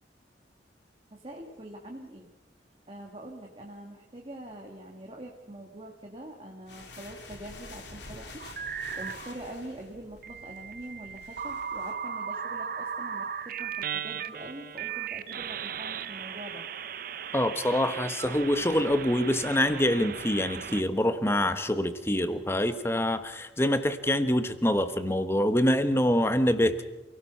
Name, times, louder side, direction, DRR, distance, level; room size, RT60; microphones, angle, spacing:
voice 1, 1.1-2.3 2.9-16.6, right 1 dB, 30° right, 0 dB, 1.9 m, -44 dB
sound 1, 6.7-11.9, left 2 dB, 70° left, 3.3 m, -48 dB
sound 2, 8.4-9.3 10.2-20.8, right 7 dB, 50° right, 0.7 m, -37 dB
voice 2, 17.3-26.8, left 1 dB, 15° left, 10 dB, 1.1 m, -25 dB
28.0 x 17.0 x 5.7 m, 1.0 s
head